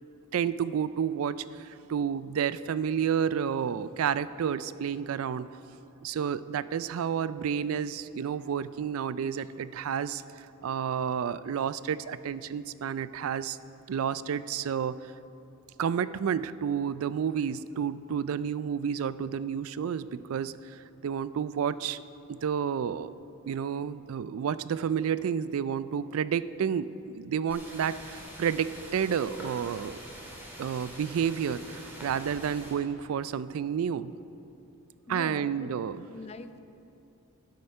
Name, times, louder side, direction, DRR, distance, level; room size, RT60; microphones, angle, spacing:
voice 1, 0.3-5.5 6.0-13.6 13.9-15.1 15.8-22.0 22.3-23.2 23.5-30.0 30.6-34.1 35.1-36.0, right 7 dB, 70° right, 16 dB, 0.3 m, -30 dB
sound 1, 27.5-32.7, equal, 10° right, 2.5 m, -45 dB
voice 2, 35.1-35.8 36.1-36.6, left 3 dB, 30° left, 11 dB, 0.4 m, -43 dB
12.5 x 9.4 x 5.4 m, 2.9 s
head